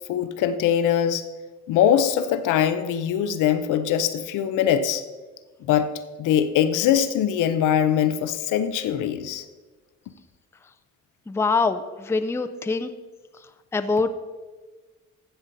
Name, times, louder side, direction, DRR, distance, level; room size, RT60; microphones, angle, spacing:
voice 1, 0.1-1.2 1.7-5.0 5.7-5.9 6.2-9.4, left 9 dB, 90° left, 11 dB, 0.7 m, -22 dB
voice 2, 11.3-12.9 13.7-14.1, left 4 dB, 10° left, 9 dB, 0.5 m, -24 dB
13.5 x 7.9 x 4.0 m, 1.3 s
cardioid pair, 90°, 30 cm